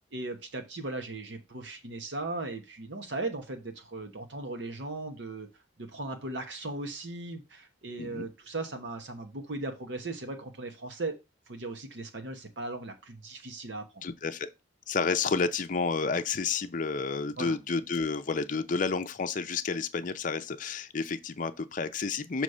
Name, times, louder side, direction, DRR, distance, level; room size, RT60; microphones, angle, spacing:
voice 1, 0.1-5.5 5.8-11.1 11.5-14.0 17.4-17.6, right 2 dB, 70° right, 1.1 m, -37 dB
voice 2, 14.0-14.5 14.9-22.4, left 4 dB, 45° left, 0.5 m, -30 dB
6.4 x 3.1 x 5.4 m
head